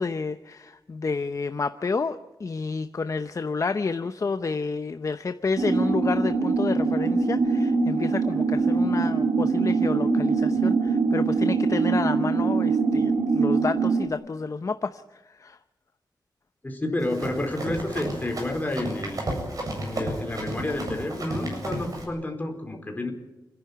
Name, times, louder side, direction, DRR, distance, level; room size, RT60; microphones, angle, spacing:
voice 1, 0.0-15.0 15.3-15.6, left 4 dB, 45° left, 10 dB, 0.8 m, -30 dB
sound 1, 5.6-14.1, right 4 dB, 80° right, 2.2 m, -23 dB
voice 2, 16.6-19.3 19.8-23.1, left 1 dB, 20° left, 2 dB, 4.6 m, -30 dB
Run, 17.0-22.0, right 1 dB, 50° right, 8.0 m, -33 dB
29.5 x 11.0 x 9.6 m, 1.1 s
wide cardioid pair, 110°, 8 cm